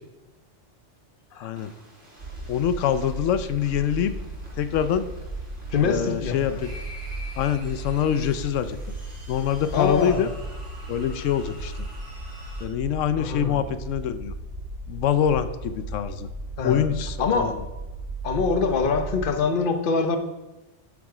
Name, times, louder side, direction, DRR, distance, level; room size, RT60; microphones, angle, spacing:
sound 1, 1.5-12.7, equal, 90° right, 4.0 m, -47 dB
sound 2, 2.2-19.3, right 2 dB, 60° right, 1.6 m, -36 dB
voice 1, 2.5-4.1 4.6-5.1 5.8-6.8 7.4-8.8 9.3-10.3 10.9-11.7 12.6-14.3 14.9-16.3 16.6-17.6, left 9 dB, 90° left, 12 dB, 1.0 m, -25 dB
voice 2, 5.7-6.6 9.7-10.2 13.2-13.6 16.6-16.9 17.2-17.5 18.2-20.2, left 5 dB, 50° left, 7 dB, 1.0 m, -24 dB
11.5 x 7.1 x 4.8 m, 1.1 s
omnidirectional pair, 1.3 m